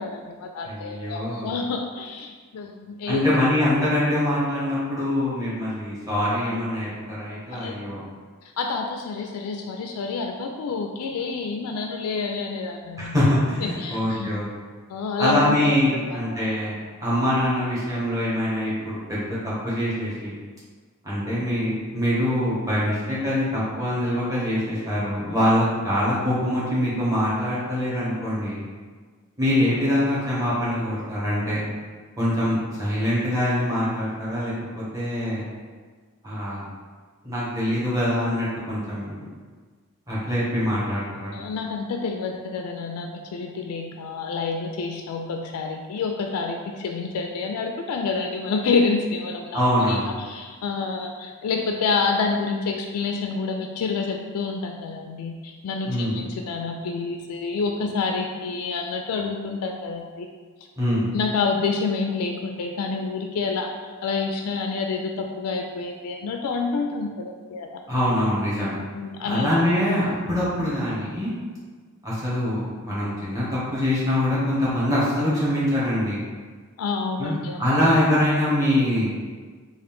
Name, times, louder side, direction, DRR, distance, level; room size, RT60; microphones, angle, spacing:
voice 1, 0.0-3.2 7.5-7.7 8.6-13.1 13.6-14.3 14.9-16.4 41.3-60.3 61.1-63.7 64.0-67.7 68.9-69.5 76.8-77.6, left 4 dB, 90° left, 3 dB, 0.3 m, -28 dB
voice 2, 0.6-1.5 3.1-8.0 13.0-14.5 15.2-20.3 21.0-28.6 29.4-31.6 32.2-35.4 36.2-36.7 37.2-39.3 40.1-41.3 49.5-50.2 55.9-56.1 60.8-61.1 67.9-68.8 69.2-71.3 72.0-76.2 77.2-79.1, left 1 dB, 15° right, -9 dB, 1.2 m, -24 dB
3.8 x 2.5 x 3.5 m, 1.5 s
head